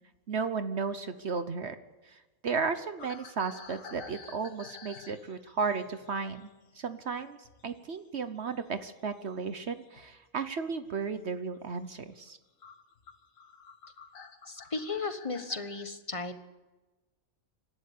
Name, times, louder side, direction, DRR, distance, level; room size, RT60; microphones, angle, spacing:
voice 1, 0.3-1.8 2.0-6.5 6.7-7.4 7.6-12.4, right 5 dB, 55° right, 11 dB, 1.2 m, -34 dB
sound 1, 3.0-7.8 8.0-10.2 10.7-11.1 11.5-11.7 12.3-12.4 12.6-15.9, left 5 dB, 75° left, 1.8 m, -51 dB
voice 2, 14.5-16.5, left 3 dB, 25° left, 9 dB, 1.3 m, -35 dB
25.5 x 12.5 x 8.5 m, 1.2 s
omnidirectional pair, 1.4 m